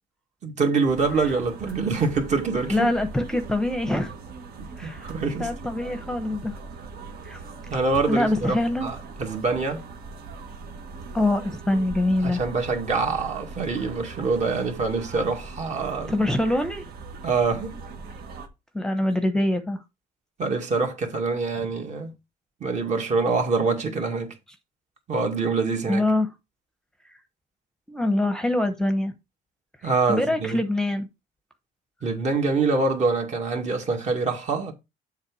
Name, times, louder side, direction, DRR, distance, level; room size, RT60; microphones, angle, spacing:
voice 1, 0.4-2.9 4.6-5.5 7.7-9.8 12.2-16.2 17.2-17.8 20.4-22.1 22.6-24.3 25.1-26.0 29.8-30.6 32.0-34.7, right 4 dB, 45° right, 2.1 m, -25 dB
sound 1, 0.9-18.5, right 4 dB, 65° right, 1.5 m, -40 dB
voice 2, 2.7-4.1 4.8-5.1 5.4-6.6 7.2-7.4 8.1-8.9 11.1-12.4 16.1-16.9 18.7-19.8 25.9-26.3 27.9-29.1 30.1-31.1, left 1 dB, 5° left, 0.9 m, -24 dB
7.4 x 3.6 x 6.2 m
cardioid pair, 110°, 17 cm